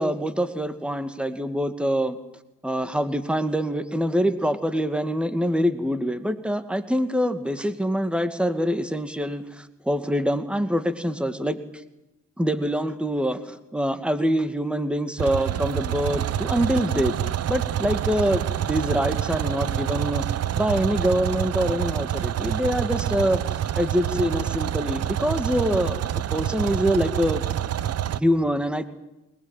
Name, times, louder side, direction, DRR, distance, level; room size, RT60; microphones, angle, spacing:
voice 1, 0.0-2.2 2.6-11.6 12.4-17.1 17.5-20.2 20.6-23.4 23.8-26.0 26.3-27.4 28.1-28.8, equal, 5° right, 10 dB, 2.3 m, -25 dB
sound 1, 15.2-28.2, right 11 dB, 55° right, 0.9 m, -27 dB
23.0 x 21.0 x 9.2 m, 0.91 s
cardioid pair, 90°, 30 cm